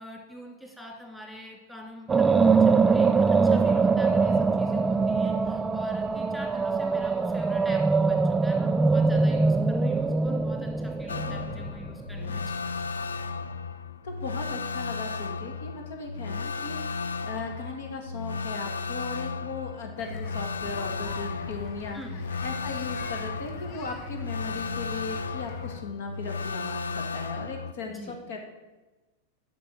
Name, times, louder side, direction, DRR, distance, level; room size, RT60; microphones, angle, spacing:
voice 1, 0.0-12.5 21.9-22.2 27.9-28.2, equal, 5° left, 0 dB, 2.7 m, -44 dB
sound 1, 2.1-12.2, right 4 dB, 15° right, 0.3 m, -23 dB
sound 2, 11.1-27.7, left 4 dB, 80° left, 0.4 m, -34 dB
voice 2, 14.0-22.0 22.4-28.5, left 4 dB, 65° left, 4 dB, 1.8 m, -37 dB
sound 3, 20.0-25.8, left 5 dB, 50° left, 1.0 m, -44 dB
8.3 x 6.2 x 6.3 m, 1.2 s
hypercardioid pair, 95°, 0 cm